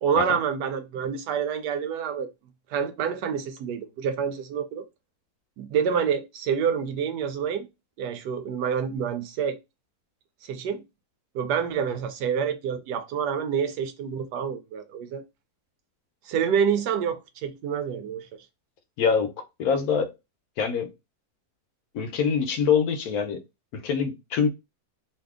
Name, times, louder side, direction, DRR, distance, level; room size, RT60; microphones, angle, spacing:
voice 1, 0.0-2.3 2.7-4.8 5.6-7.7 8.0-9.6 10.4-10.8 11.3-15.2 16.3-18.3, right 7 dB, 90° right, 1.2 m, -27 dB
voice 2, 19.0-19.3 19.6-20.1 20.6-20.9 21.9-23.4 23.7-24.5, left 6 dB, 70° left, 1.1 m, -24 dB
2.7 x 2.7 x 3.5 m
omnidirectional pair, 1.7 m